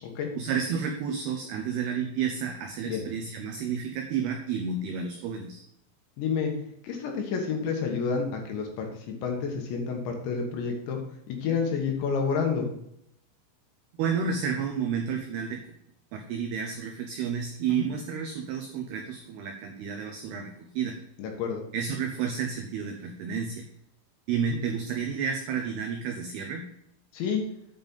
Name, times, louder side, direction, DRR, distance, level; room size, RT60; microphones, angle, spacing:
voice 1, 0.4-5.6 13.9-15.6 16.1-21.0 21.7-23.6 24.3-26.7, right 6 dB, 90° right, 4 dB, 2.2 m, -31 dB
voice 2, 6.2-6.5 6.8-11.0 11.3-12.7 17.7-17.9 21.2-21.6 24.5-24.6 27.1-27.4, left 5 dB, 70° left, 2 dB, 3.4 m, -29 dB
9.3 x 5.2 x 5.4 m, 0.75 s
omnidirectional pair, 5.6 m